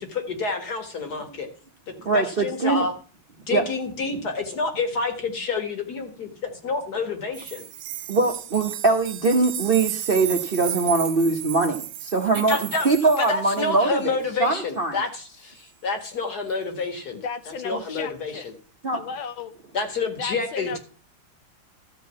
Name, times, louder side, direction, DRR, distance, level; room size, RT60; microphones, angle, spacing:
voice 1, 0.0-1.5 2.1-2.9 3.5-7.7 12.3-12.9 13.2-17.2 17.6-18.5 19.7-20.8, left 4 dB, 50° left, 5 dB, 2.3 m, -28 dB
voice 2, 2.0-2.9 3.5-3.6 8.1-12.6 12.8-15.0 17.7-17.8 18.8-19.0, right 3 dB, 40° right, 3 dB, 0.8 m, -22 dB
sound 1, 7.3-13.8 16.0-16.1, right 12 dB, 70° right, 1.4 m, -34 dB
voice 3, 17.1-18.5 18.9-19.5 20.2-20.8, left 6 dB, 75° left, 9 dB, 1.6 m, -35 dB
13.5 x 4.6 x 8.4 m, 0.39 s
omnidirectional pair, 2.3 m